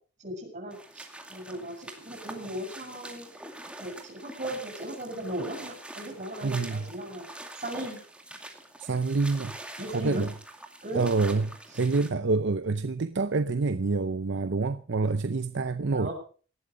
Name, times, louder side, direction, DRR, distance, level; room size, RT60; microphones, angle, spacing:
voice 1, 0.2-3.3 3.8-7.3 7.6-8.0 9.8-10.2 10.8-11.1 15.9-16.1, right 1 dB, 35° right, 7.0 m, -37 dB
sound 1, 0.7-12.1, right 1 dB, 5° right, 2.2 m, -45 dB
voice 2, 6.4-6.8 8.8-9.5 9.9-10.3 10.9-16.1, right 3 dB, 60° right, 0.6 m, -27 dB
18.5 x 12.5 x 5.1 m
head